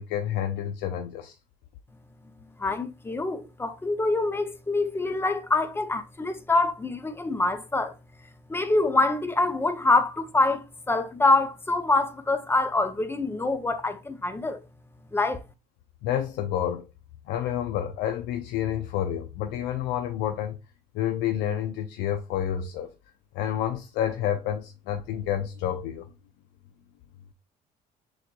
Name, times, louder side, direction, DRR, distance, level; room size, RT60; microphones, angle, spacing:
voice 1, 0.0-1.3 16.0-16.9 17.3-20.6 20.9-22.9 23.3-26.1, left 10 dB, 90° left, 0.5 m, -29 dB
voice 2, 2.6-7.9 8.5-14.6 15.1-15.4, left 2 dB, 15° left, 0.6 m, -25 dB
6.2 x 3.0 x 2.2 m
cardioid pair, 110°, 17 cm